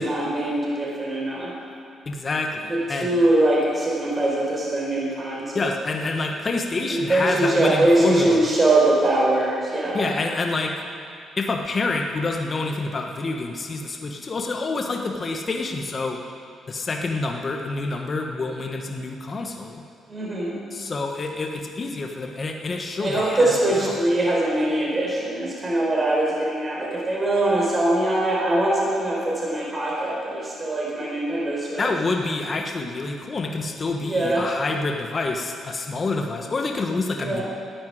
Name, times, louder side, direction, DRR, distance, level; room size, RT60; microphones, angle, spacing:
voice 1, 0.0-1.5 2.7-5.7 6.9-10.0 20.1-20.6 23.0-31.9 34.1-34.5 37.2-37.4, right 1 dB, 25° right, -4 dB, 4.8 m, -22 dB
voice 2, 2.1-3.1 5.5-8.5 9.9-10.7 11.4-16.2 16.7-19.8 20.7-24.0 31.8-37.4, left 3 dB, 35° left, 2 dB, 1.4 m, -27 dB
13.0 x 9.6 x 9.3 m, 2.6 s
cardioid pair, 90°, 0 cm